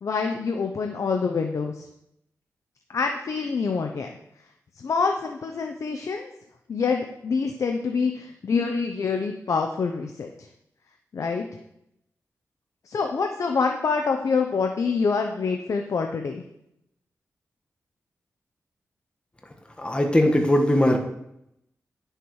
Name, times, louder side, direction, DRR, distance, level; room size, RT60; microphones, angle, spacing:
voice 1, 0.0-1.9 2.9-4.1 4.8-6.3 6.7-10.3 11.1-11.5 12.8-16.4, left 5 dB, 65° left, 4 dB, 0.8 m, -26 dB
voice 2, 19.8-21.0, left 1 dB, 20° left, 3 dB, 1.4 m, -19 dB
10.0 x 6.7 x 4.7 m, 0.80 s
wide cardioid pair, 95°, 6 cm